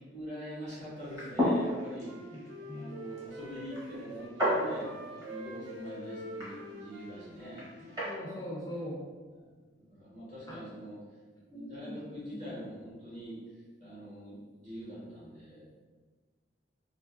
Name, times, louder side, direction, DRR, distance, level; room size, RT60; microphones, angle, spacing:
voice 1, 0.0-2.4 2.7-8.0 8.7-8.8 9.3-11.0 11.5-13.4 13.8-14.4 14.6-15.6, equal, 40° right, -9 dB, 1.1 m, -44 dB
sound 1, 1.0-8.2, equal, 20° right, 0.9 m, -35 dB
Wind instrument woodwind instrument, 1.4-4.3 4.8-8.2, right 1 dB, 75° right, 0.4 m, -47 dB
voice 2, 2.3-2.9 7.8-9.0 10.5-10.6 11.5-12.0 12.3-12.5, left 1 dB, 20° left, -5 dB, 0.4 m, -42 dB
2.5 x 2.5 x 2.4 m, 1.4 s
head